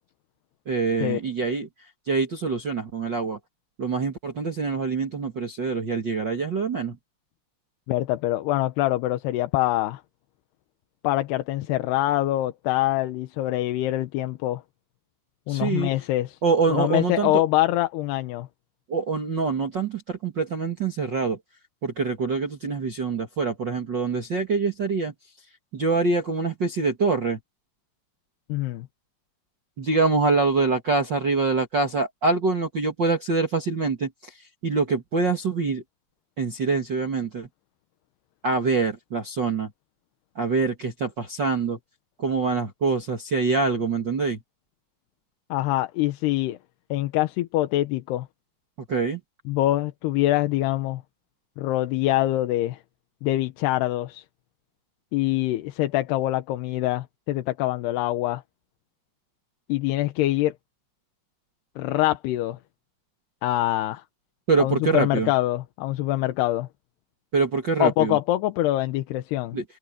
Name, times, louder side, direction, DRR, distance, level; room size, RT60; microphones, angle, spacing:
voice 1, 0.6-1.7 2.1-3.4 3.8-7.0 15.5-15.9 16.4-17.4 18.9-21.4 21.8-25.1 25.7-27.4 29.8-34.3 34.6-35.8 36.4-37.5 38.4-39.7 40.3-41.8 42.2-44.4 48.9-49.2 64.5-65.3 67.3-68.2 69.5-69.6, right 4 dB, 70° right, 1.0 m, -25 dB
voice 2, 7.9-10.0 11.0-14.6 15.5-16.4 16.7-18.5 28.5-28.9 45.5-46.6 46.9-48.3 49.5-51.0 51.6-52.8 53.2-54.2 55.1-58.4 59.7-60.5 61.8-62.6 63.4-64.0 64.6-66.7 67.8-69.6, left 15 dB, 75° left, 2.8 m, -24 dB
omnidirectional pair, 5.2 m